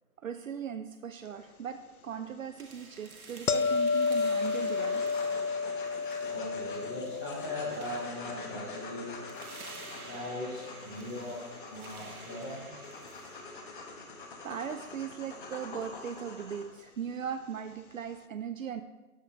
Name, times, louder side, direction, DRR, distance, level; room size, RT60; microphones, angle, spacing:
voice 1, 0.2-5.1 14.4-18.8, right 8 dB, 65° right, 8 dB, 0.6 m, -38 dB
sound 1, 2.6-14.5, right 3 dB, 80° right, 1.7 m, -51 dB
sound 2, 3.5-10.5 15.7-15.9, left 5 dB, 80° left, 0.7 m, -32 dB
sound 3, 3.8-16.6, left 3 dB, 35° left, 1.3 m, -46 dB
voice 2, 6.3-9.2 10.1-11.4 11.7-12.8, left 1 dB, 10° left, -8 dB, 0.8 m, -39 dB
13.0 x 5.2 x 3.9 m, 1.2 s
hypercardioid pair, 155°, 43 cm